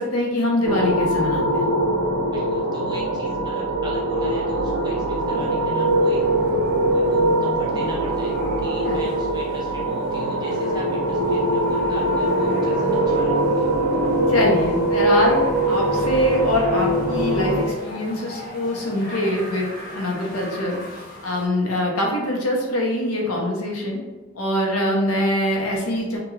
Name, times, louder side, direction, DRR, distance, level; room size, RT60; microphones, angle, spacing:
voice 1, 0.0-1.7 8.8-9.1 14.3-20.8 21.2-24.0 24.3-26.2, left 1 dB, 80° left, -1 dB, 0.7 m, -23 dB
sound 1, 0.6-17.6, right 1 dB, 75° right, 0.4 m, -22 dB
voice 2, 2.3-6.6 6.9-13.7, equal, 20° right, -4 dB, 0.5 m, -39 dB
sound 2, 5.4-21.5, left 1 dB, 40° left, 0.6 m, -40 dB
2.3 x 2.2 x 3.1 m, 1.2 s
head